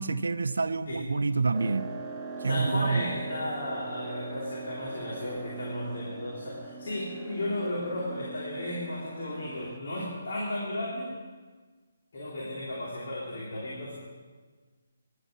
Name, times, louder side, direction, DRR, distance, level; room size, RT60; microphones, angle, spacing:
voice 1, 0.0-1.9 2.4-3.1, right 4 dB, 75° right, 0.5 m, -28 dB
sound 1, 1.5-9.8, right 4 dB, 15° right, 1.1 m, -41 dB
voice 2, 2.4-11.1 12.1-13.9, left 1 dB, 60° left, 3.5 m, -34 dB
11.5 x 8.9 x 7.1 m
figure-of-eight pair, 145°, 0 cm